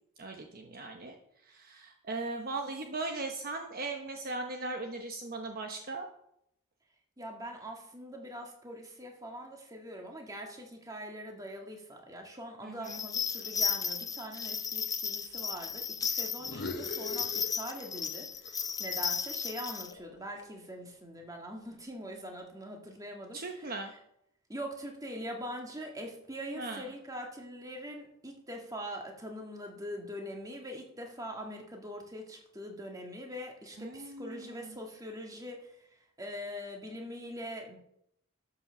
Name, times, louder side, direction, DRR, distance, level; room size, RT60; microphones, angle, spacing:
voice 1, 0.2-1.2 1.4-6.1 12.6-13.0 23.3-23.9 26.6-26.8 33.8-34.8, right 3 dB, 45° right, 3 dB, 1.0 m, -38 dB
voice 2, 7.2-23.7 24.5-35.7 36.2-37.8, equal, 15° right, 2 dB, 1.8 m, -43 dB
sound 1, 12.8-19.9, left 6 dB, 15° left, 0.6 m, -34 dB
sound 2, 16.4-18.1 18.4-20.7, left 3 dB, 50° left, 0.8 m, -43 dB
12.5 x 5.8 x 6.7 m, 0.75 s
head